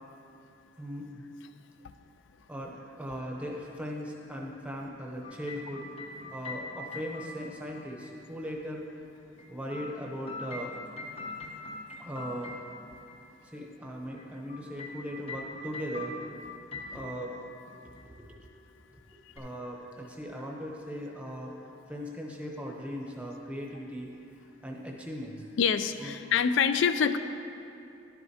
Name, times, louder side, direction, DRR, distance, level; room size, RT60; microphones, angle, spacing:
voice 1, 0.8-1.2 2.5-5.9 6.3-8.9 9.5-10.8 12.0-12.6 13.5-16.2 16.9-17.3 17.8-18.4 18.9-19.0 19.4-21.5 21.9-24.1 24.6-25.4 26.0-26.1, equal, 5° right, -1 dB, 0.7 m, -38 dB
sound 1, 5.2-8.2 9.4-13.2 14.2-17.4 17.7-18.1 19.4-19.5, left 3 dB, 30° left, 0.7 m, -43 dB
voice 2, 25.6-27.2, left 7 dB, 75° left, 11 dB, 0.3 m, -26 dB
11.0 x 7.9 x 2.8 m, 2.7 s
head